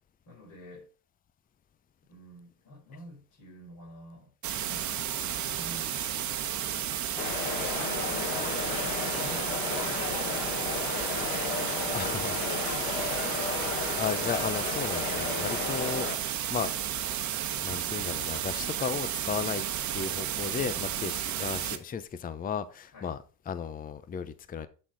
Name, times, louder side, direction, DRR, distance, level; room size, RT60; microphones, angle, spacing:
voice 1, 0.3-0.9 2.1-4.8 5.4-6.0 7.6-12.0 13.1-13.4 22.9-23.1, left 2 dB, 45° left, 4.2 m, -47 dB
sound 1, 4.4-21.8, right 10 dB, 45° right, 1.1 m, -32 dB
sound 2, 7.2-16.2, left 6 dB, 80° left, 1.5 m, -34 dB
voice 2, 11.9-12.4 14.0-16.7 17.6-19.7 19.9-24.7, left 7 dB, 20° left, 0.6 m, -35 dB
11.0 x 4.2 x 3.9 m
hypercardioid pair, 85°, 42 cm